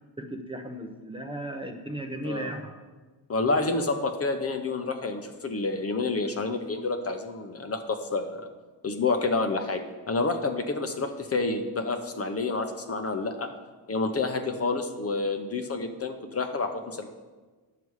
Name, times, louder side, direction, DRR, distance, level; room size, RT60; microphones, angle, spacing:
voice 1, 0.2-2.8, right 1 dB, 10° right, 3 dB, 0.7 m, -36 dB
voice 2, 3.3-8.5 8.8-9.8 10.1-13.5 13.9-17.1, left 3 dB, 35° left, 6 dB, 0.8 m, -29 dB
9.3 x 6.8 x 4.8 m, 1.3 s
cardioid pair, 115°, 43 cm